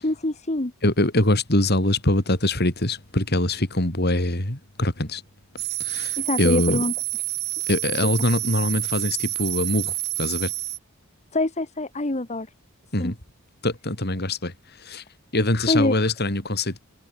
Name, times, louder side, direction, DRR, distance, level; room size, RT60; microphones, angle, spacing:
voice 1, 0.0-0.7 6.2-6.9 11.3-12.5 13.0-13.1 15.7-15.9, left 2 dB, 30° left, 1.4 m, -24 dB
voice 2, 0.8-5.2 5.8-6.8 7.7-9.9 10.2-10.5 12.9-13.1 13.6-14.5 14.8-15.0 15.3-16.8, left 1 dB, 45° left, 4.0 m, -23 dB
sound 1, 5.6-10.8, right 16 dB, 45° right, 1.7 m, -28 dB
head